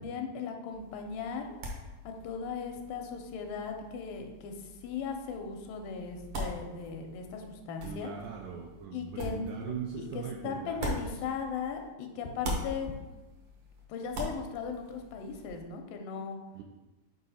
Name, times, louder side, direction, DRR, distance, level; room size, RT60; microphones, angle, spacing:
voice 1, 0.0-1.5 2.0-8.1 8.9-12.9 13.9-16.4, left 5 dB, 80° left, 4 dB, 2.3 m, -38 dB
sound 1, 0.7-11.9 12.2-15.6, equal, 65° right, 1.5 m, -42 dB
voice 2, 7.8-11.2 16.6-16.7, right 7 dB, 85° right, 0 dB, 1.9 m, -41 dB
5.7 x 4.7 x 4.1 m, 1.1 s
omnidirectional pair, 4.1 m